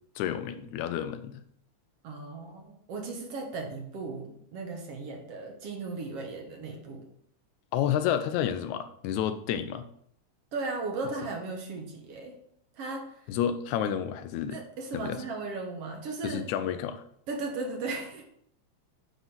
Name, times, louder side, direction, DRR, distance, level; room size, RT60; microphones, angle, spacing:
voice 1, 0.2-1.4 7.7-9.9 13.3-14.6 14.9-15.2 16.2-17.0, left 9 dB, 90° left, 11 dB, 2.0 m, -30 dB
voice 2, 2.0-7.1 10.5-12.4 12.8-13.3 14.5-16.5 17.3-18.2, right 3 dB, 60° right, 2 dB, 2.1 m, -36 dB
9.6 x 3.9 x 6.0 m, 0.70 s
omnidirectional pair, 3.3 m